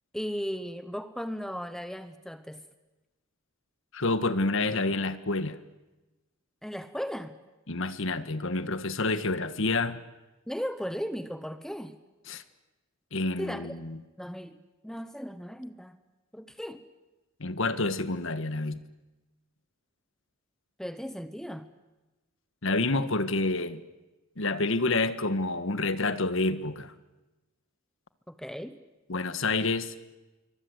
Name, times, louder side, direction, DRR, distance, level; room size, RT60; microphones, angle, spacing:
voice 1, 0.1-2.6 6.6-7.4 10.5-12.0 13.4-13.7 14.2-16.0 16.3-16.8 20.8-21.7 28.3-28.8, equal, ahead, 1.0 m, -36 dB
voice 2, 3.9-5.6 7.7-10.0 12.3-12.4 13.1-14.0 17.4-18.8 22.6-23.8 24.4-26.9 29.1-29.9, left 3 dB, 65° left, 1.5 m, -28 dB
27.0 x 23.5 x 8.0 m
head